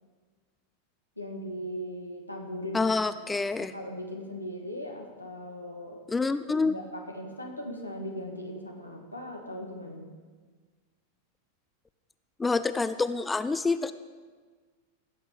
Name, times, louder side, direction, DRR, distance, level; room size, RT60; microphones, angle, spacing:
voice 1, 1.2-2.9 3.6-6.0 6.6-10.1, equal, 85° left, 1 dB, 1.8 m, -38 dB
voice 2, 2.7-3.7 6.1-6.7 12.4-13.9, left 3 dB, 10° left, 13 dB, 0.4 m, -27 dB
16.5 x 8.1 x 4.9 m, 1.5 s
figure-of-eight pair, 90°, 0 cm